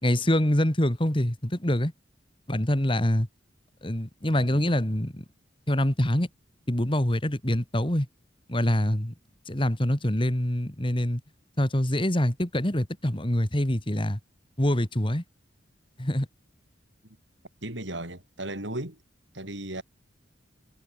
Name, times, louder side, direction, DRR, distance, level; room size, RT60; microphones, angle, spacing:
voice 1, 0.0-1.9 2.5-3.3 3.8-5.2 5.7-6.3 6.7-8.1 8.5-9.1 9.5-11.2 11.6-14.2 14.6-15.2 16.0-16.3, left 1 dB, 25° left, 2.3 m, -25 dB
voice 2, 4.3-4.8 17.6-19.0 19.3-19.8, right 1 dB, 70° right, 6.8 m, -36 dB
head